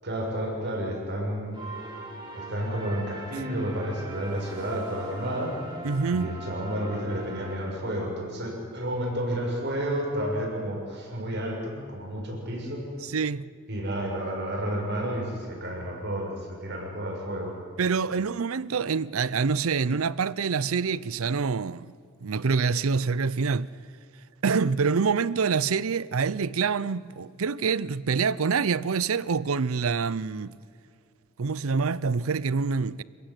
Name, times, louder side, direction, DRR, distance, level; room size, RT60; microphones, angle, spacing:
voice 1, 0.0-1.6 2.3-5.6 6.1-12.9 13.7-17.6, right 1 dB, 55° right, 6.6 m, -31 dB
sound 1, 1.5-8.1, right 2 dB, 25° right, 5.5 m, -41 dB
voice 2, 5.8-6.3 13.0-13.5 17.8-21.9 22.2-23.7 24.4-30.5 31.4-33.0, right 5 dB, 80° right, 0.6 m, -26 dB
27.5 x 15.5 x 9.7 m
head